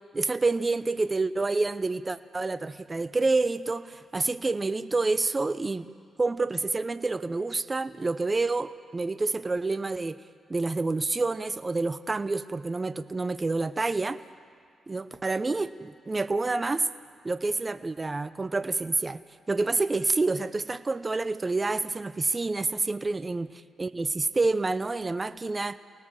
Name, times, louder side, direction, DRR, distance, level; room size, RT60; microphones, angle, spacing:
voice 1, 0.1-5.9 6.2-10.2 10.5-14.2 14.9-16.9 17.2-19.2 19.5-23.5 23.8-25.8, right 3 dB, 35° right, 13 dB, 0.8 m, -28 dB
28.0 x 19.0 x 7.5 m, 2.2 s
hypercardioid pair, 45°, 0 cm